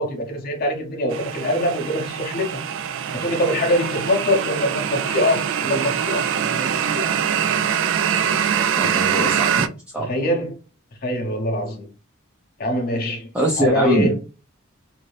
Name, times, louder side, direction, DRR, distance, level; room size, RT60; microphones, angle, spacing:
voice 1, 0.0-2.6 3.1-7.1 10.0-10.6 11.0-11.9 12.6-13.3 13.6-14.2, left 1 dB, 45° left, 0.7 m, -23 dB
sound 1, 1.1-9.7, right 8 dB, 65° right, 0.3 m, -23 dB
voice 2, 8.8-9.7 9.9-10.2 13.3-14.1, equal, 5° right, 0.5 m, -22 dB
2.6 x 2.6 x 3.2 m
head